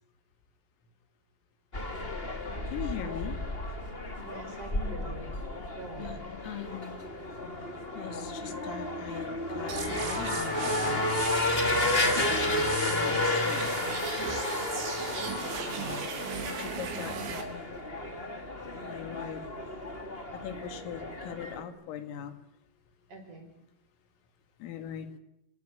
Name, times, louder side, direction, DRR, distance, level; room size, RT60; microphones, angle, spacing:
sound 1, 1.7-21.6, left 2 dB, 20° left, 1.6 m, -32 dB
voice 1, 2.7-3.4 6.0-6.2 6.4-6.9 7.9-11.1 12.0-13.7 16.6-17.4 18.8-19.4 20.4-22.4 24.6-25.1, left 9 dB, 85° left, 9 dB, 4.8 m, -40 dB
voice 2, 4.2-5.3 5.7-6.2 15.3-16.0 16.6-17.3 23.1-23.5, right 3 dB, 40° right, 5 dB, 6.0 m, -45 dB
sound 2, 9.7-17.4, right 6 dB, 90° right, 6.1 m, -37 dB
30.0 x 20.0 x 9.1 m, 0.81 s
omnidirectional pair, 5.8 m